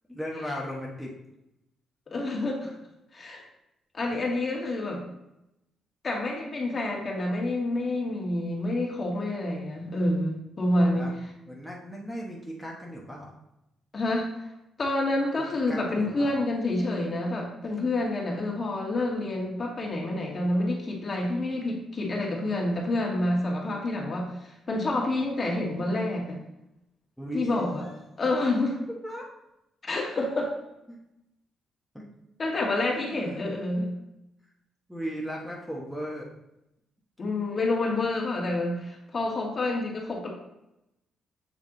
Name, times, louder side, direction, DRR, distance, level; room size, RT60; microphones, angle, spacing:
voice 1, 0.1-1.1 2.2-2.3 4.0-4.2 10.9-11.1 11.5-13.3 15.7-16.3 27.2-28.0 29.0-29.3 30.9-31.0 31.9-32.1 33.1-33.4 34.9-36.3, equal, ahead, -2 dB, 1.1 m, -37 dB
voice 2, 2.1-2.7 3.1-3.4 3.9-5.0 6.0-11.1 13.9-14.4 14.8-26.4 27.3-27.8 28.2-28.8 29.8-30.5 32.4-33.9 37.2-40.3, left 2 dB, 35° left, -1 dB, 1.7 m, -28 dB
7.5 x 3.4 x 3.9 m, 0.88 s
cardioid pair, 90°, 0 cm